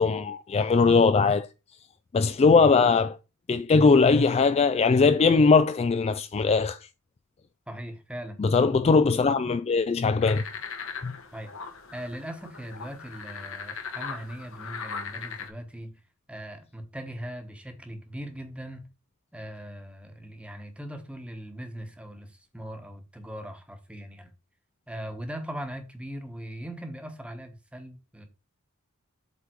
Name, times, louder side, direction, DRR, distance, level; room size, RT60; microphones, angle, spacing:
voice 1, 0.0-1.5 2.1-3.2 3.5-6.8 8.4-10.4 11.0-11.1, left 4 dB, 30° left, 0.3 m, -20 dB
voice 2, 7.7-8.4 11.3-11.5 11.9-15.9 16.3-18.9 19.3-24.3 24.9-28.3, equal, 5° right, 1.2 m, -40 dB
sound 1, 10.2-15.5, left 5 dB, 65° left, 1.2 m, -39 dB
7.9 x 3.7 x 4.5 m
head